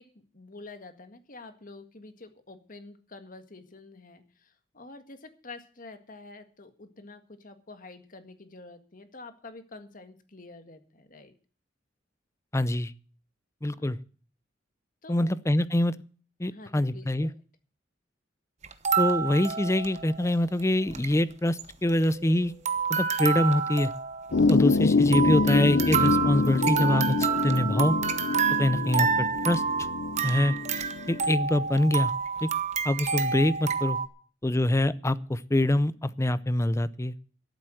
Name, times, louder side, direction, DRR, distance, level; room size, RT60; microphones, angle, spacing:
voice 1, 0.0-11.3 13.7-13.9 15.0-15.3 16.5-17.4, left 3 dB, 45° left, 9 dB, 1.8 m, -48 dB
voice 2, 12.5-12.9 13.6-14.0 15.1-16.0 16.4-17.3 19.0-22.5 22.9-23.9 24.5-28.0 28.6-29.6 30.2-30.6 31.1-32.1 32.4-32.5 32.8-34.0 34.4-37.1, left 1 dB, 15° left, 17 dB, 0.6 m, -25 dB
sound 1, 18.6-20.3 20.6-20.7 20.9-21.1 21.6-22.4 22.7-34.1, right 6 dB, 40° right, 1.1 m, -29 dB
sound 2, 24.3-31.3, left 3 dB, 75° left, 0.6 m, -26 dB
13.0 x 8.0 x 7.7 m, 0.40 s
head